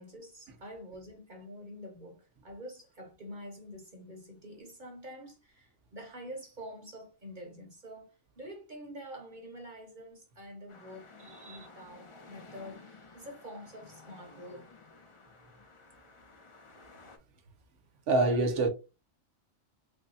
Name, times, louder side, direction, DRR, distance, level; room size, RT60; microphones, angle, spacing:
voice 1, 0.0-14.7, equal, 45° right, 1.0 m, -47 dB
sound 1, 10.7-17.2, left 3 dB, 35° left, 0.6 m, -54 dB
voice 2, 11.3-11.7 18.1-18.7, right 2 dB, 80° right, 1.1 m, -27 dB
3.4 x 2.2 x 3.9 m
omnidirectional pair, 1.2 m